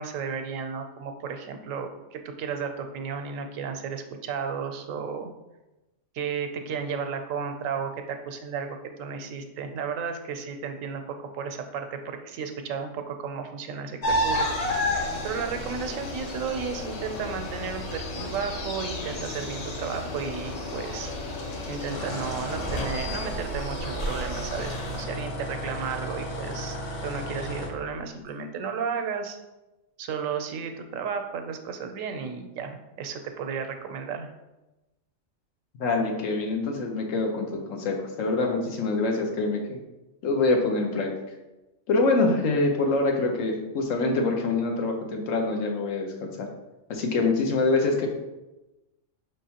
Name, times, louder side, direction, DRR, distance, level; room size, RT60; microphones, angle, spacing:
voice 1, 0.0-5.3 6.1-14.5 14.9-21.1 21.7-26.8 27.0-29.4 30.0-34.3, right 6 dB, 90° right, 6 dB, 1.0 m, -33 dB
sound 1, 14.0-25.0, left 1 dB, 40° left, 0.7 m, -32 dB
sound 2, 21.9-27.7, equal, 60° left, 0.9 m, -35 dB
voice 2, 35.8-39.8 40.2-41.1 41.9-46.5 46.9-48.1, left 3 dB, 80° left, 2 dB, 1.1 m, -25 dB
5.4 x 3.5 x 2.8 m, 1.0 s
omnidirectional pair, 1.3 m